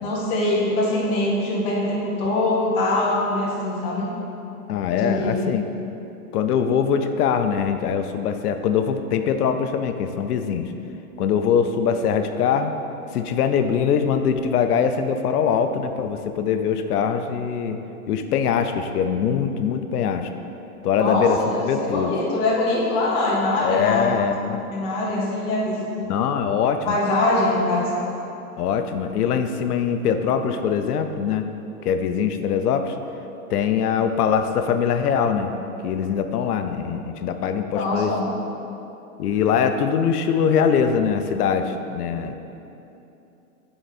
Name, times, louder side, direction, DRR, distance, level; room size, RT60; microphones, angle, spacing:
voice 1, 0.0-4.1 4.9-5.4 20.9-24.1 24.7-26.1 26.9-27.9 36.8-36.9 37.7-38.3, left 2 dB, 15° left, -6 dB, 0.6 m, -23 dB
voice 2, 4.7-5.6 6.3-10.7 11.2-12.7 13.1-17.8 18.1-20.3 20.8-22.1 23.6-24.6 26.1-27.0 28.6-31.5 31.8-32.9 33.5-35.5 35.8-38.1 39.2-42.3, left 7 dB, 90° left, 7 dB, 0.6 m, -22 dB
7.8 x 4.0 x 4.2 m, 2.9 s
supercardioid pair, 165°, 44 cm